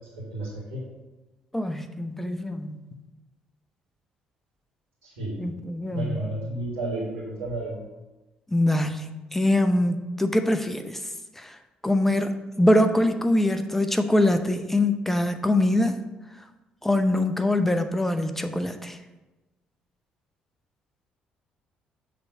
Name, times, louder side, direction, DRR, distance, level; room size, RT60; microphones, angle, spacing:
voice 1, 0.3-0.8 5.0-5.4 5.9-7.8, right 2 dB, 75° right, -6 dB, 2.0 m, -32 dB
voice 2, 1.5-2.8 5.4-6.2 8.5-11.0 11.4-11.6 11.8-16.0 16.8-19.0, left 1 dB, 5° left, 8 dB, 0.7 m, -23 dB
6.9 x 3.2 x 5.9 m, 1.1 s
figure-of-eight pair, 50°, 4 cm